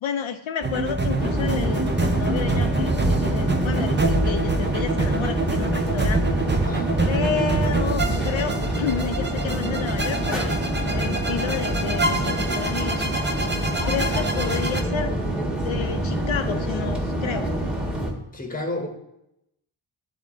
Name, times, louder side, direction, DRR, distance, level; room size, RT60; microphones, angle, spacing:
voice 1, 0.0-6.3 7.0-10.6 10.9-13.1 13.8-15.1 15.6-17.5, left 7 dB, 70° left, 7 dB, 0.5 m, -30 dB
sound 1, 0.6-14.8, right 2 dB, 25° right, 0.6 m, -26 dB
sound 2, 1.2-18.1, right 1 dB, ahead, 1.4 m, -26 dB
voice 2, 6.5-6.9 14.4-14.7 18.3-18.9, left 2 dB, 15° left, 4 dB, 1.1 m, -31 dB
10.5 x 3.6 x 3.7 m, 0.83 s
wide cardioid pair, 70°, 49 cm